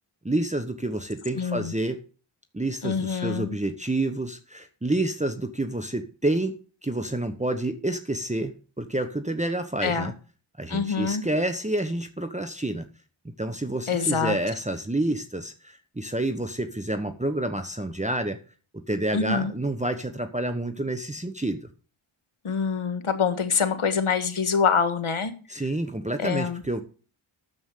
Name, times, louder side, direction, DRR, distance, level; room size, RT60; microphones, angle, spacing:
voice 1, 0.2-2.0 2.5-6.5 6.8-10.1 10.6-12.9 13.4-18.4 18.7-21.7 25.5-26.8, right 1 dB, 15° right, 7 dB, 1.0 m, -28 dB
voice 2, 1.4-1.7 2.8-3.5 9.8-10.1 10.7-11.2 13.9-14.4 19.1-19.5 22.4-25.3 26.2-26.6, left 6 dB, 80° left, 10 dB, 1.6 m, -25 dB
9.6 x 7.2 x 6.5 m, 0.38 s
wide cardioid pair, 50°, 50 cm